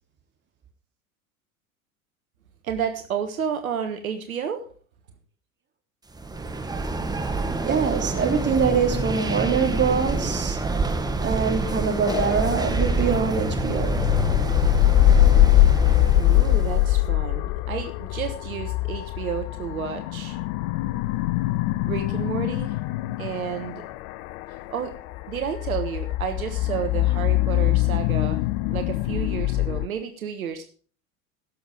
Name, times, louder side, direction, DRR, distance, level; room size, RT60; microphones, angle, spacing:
voice 1, 2.6-4.6 16.2-20.4 21.8-22.8 23.2-23.8 24.7-24.9 25.3-28.4 28.7-30.6, right 8 dB, 75° right, 1.4 m, -31 dB
sound 1, 6.1-17.0, right 3 dB, 10° right, 1.3 m, -27 dB
voice 2, 7.6-10.6 11.2-14.1, right 5 dB, 25° right, 3.0 m, -24 dB
sound 2, 12.1-29.9, left 17 dB, 45° left, 0.5 m, -23 dB
16.5 x 7.1 x 4.9 m
figure-of-eight pair, 80°, 43 cm